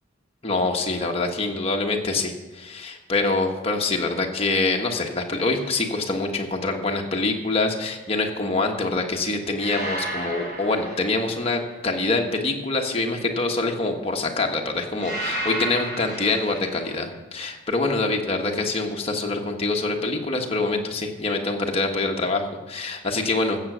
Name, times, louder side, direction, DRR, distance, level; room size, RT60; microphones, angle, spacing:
voice 1, 0.4-23.6, left 3 dB, 30° left, 2 dB, 1.3 m, -25 dB
sound 1, 5.4-5.8 9.6-11.7 15.0-17.0, right 1 dB, 50° right, 4.5 m, -33 dB
14.5 x 8.1 x 6.2 m, 1.1 s
head